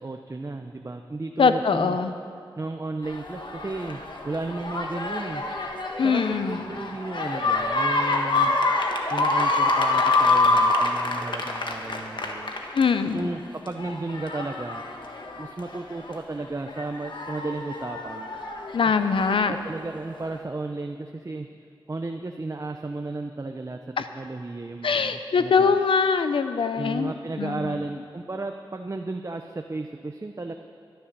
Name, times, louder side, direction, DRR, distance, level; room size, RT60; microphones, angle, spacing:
voice 1, 0.0-2.0 2.6-5.4 6.0-8.5 9.1-12.5 13.1-14.8 15.4-18.3 18.8-21.5 21.9-23.8 24.1-25.8 26.8-30.5, right 2 dB, 35° right, 5 dB, 0.7 m, -34 dB
voice 2, 1.4-2.1 6.0-6.6 12.7-13.3 18.7-19.5 24.0-24.1 24.8-27.1 27.4-27.7, left 5 dB, 80° left, 10 dB, 0.7 m, -22 dB
sound 1, 3.0-13.2 13.7-16.2 16.7-19.5 20.3-20.4, left 2 dB, 65° left, 1.5 m, -26 dB
12.5 x 11.5 x 6.8 m, 2.3 s
cardioid pair, 50°, 9 cm